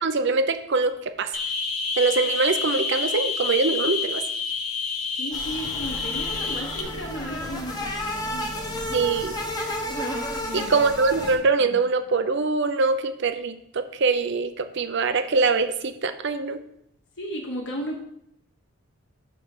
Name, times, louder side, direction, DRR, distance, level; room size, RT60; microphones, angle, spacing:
voice 1, 0.0-1.3 2.0-4.2 8.9-9.3 10.5-16.6, right 4 dB, 55° right, 10 dB, 0.6 m, -23 dB
sound 1, 1.3-6.8, left 4 dB, 75° left, 1.2 m, -28 dB
voice 2, 5.1-9.0 10.4-10.9 11.7-11.8 17.2-18.0, equal, 55° left, 0 dB, 1.4 m, -35 dB
sound 2, 5.3-11.4, left 1 dB, 15° left, 1.0 m, -32 dB
5.8 x 5.3 x 6.7 m, 0.73 s
head